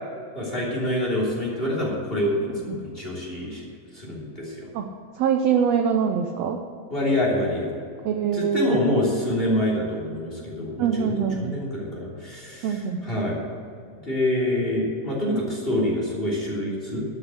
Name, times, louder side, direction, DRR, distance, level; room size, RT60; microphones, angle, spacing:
voice 1, 0.3-3.6 3.9-4.7 6.9-7.7 8.3-13.5 14.0-17.0, left 1 dB, 15° left, -3 dB, 3.1 m, -26 dB
voice 2, 5.2-6.6 8.0-8.9 10.8-11.5 12.6-13.0, right 7 dB, 80° right, 4 dB, 1.5 m, -23 dB
12.5 x 7.5 x 8.2 m, 2.5 s
omnidirectional pair, 3.8 m